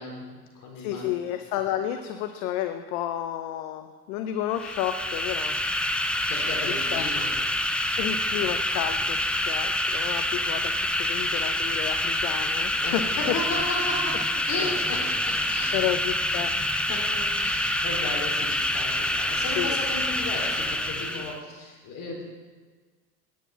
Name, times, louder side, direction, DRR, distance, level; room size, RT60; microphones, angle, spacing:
voice 1, 0.0-1.1 6.3-7.4 12.8-15.8 16.9-22.2, left 2 dB, 40° left, -1 dB, 4.2 m, -34 dB
voice 2, 0.8-5.6 6.7-7.1 8.0-13.0 14.6-14.7 15.4-17.0 19.5-19.8, left 11 dB, 60° left, 8 dB, 0.8 m, -31 dB
sound 1, 4.5-21.4, left 1 dB, ahead, 0.4 m, -27 dB
9.4 x 9.1 x 6.0 m, 1.4 s
hypercardioid pair, 80°, 47 cm